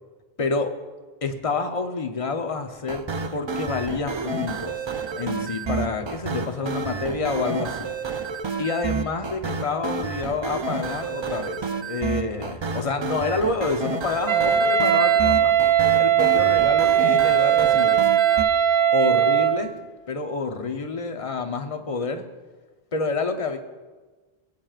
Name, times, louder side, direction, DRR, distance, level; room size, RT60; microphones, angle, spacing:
voice 1, 0.4-0.7 1.2-3.0 3.3-4.8 5.1-7.9 8.6-15.6 15.9-18.0 18.9-19.7 20.1-22.2 22.9-23.6, left 4 dB, 35° left, 6 dB, 0.8 m, -28 dB
sound 1, 2.9-18.5, right 4 dB, 40° right, 0.4 m, -30 dB
Wind instrument woodwind instrument, 14.3-19.6, right 9 dB, 70° right, 1.1 m, -19 dB
18.5 x 9.0 x 2.4 m, 1.3 s
omnidirectional pair, 1.0 m